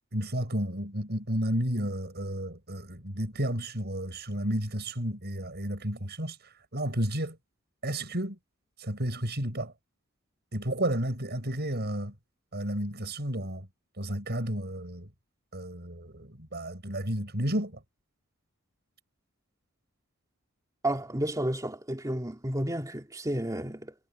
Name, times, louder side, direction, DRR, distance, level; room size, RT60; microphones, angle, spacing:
voice 1, 0.1-7.4 7.8-8.4 8.8-9.7 10.5-12.1 12.5-13.7 14.0-15.1 15.5-17.8, right 1 dB, 50° right, 7.9 m, -32 dB
voice 2, 20.8-23.9, right 1 dB, 15° right, 2.4 m, -31 dB
head